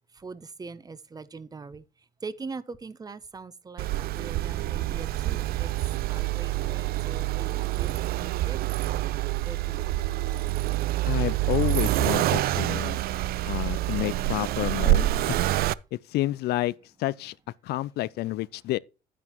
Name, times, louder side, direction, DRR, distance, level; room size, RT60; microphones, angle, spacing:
voice 1, 0.1-1.8 2.2-5.7 6.1-9.2 9.4-9.9, right 4 dB, 20° right, 0.8 m, -42 dB
Accelerating revving vroom, 3.8-15.7, right 16 dB, 65° right, 0.4 m, -27 dB
voice 2, 11.1-13.0 13.5-15.4 15.9-17.3 17.6-18.8, left 16 dB, 75° left, 0.4 m, -29 dB
9.8 x 9.5 x 3.0 m
cardioid pair, 110°, 17 cm